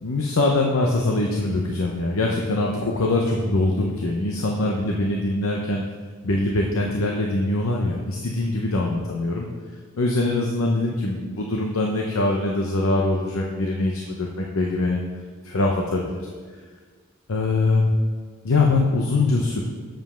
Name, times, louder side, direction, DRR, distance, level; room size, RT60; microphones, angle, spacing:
voice 1, 0.0-5.8 6.2-9.5 10.0-15.0 15.4-16.2 17.3-17.9 18.4-19.6, left 2 dB, 80° left, 0 dB, 0.7 m, -23 dB
7.6 x 5.2 x 5.7 m, 1.5 s
head